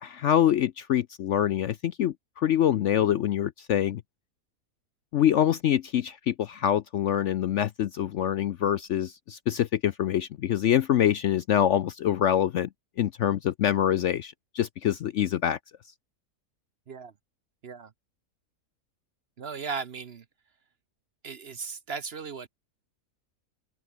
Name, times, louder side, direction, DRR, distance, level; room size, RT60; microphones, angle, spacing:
voice 1, 0.0-4.0 5.1-12.7 13.0-15.6, left 10 dB, 65° left, 0.8 m, -25 dB
voice 2, 19.4-20.2 21.2-22.5, right 5 dB, 45° right, 1.0 m, -37 dB
omnidirectional pair, 1.6 m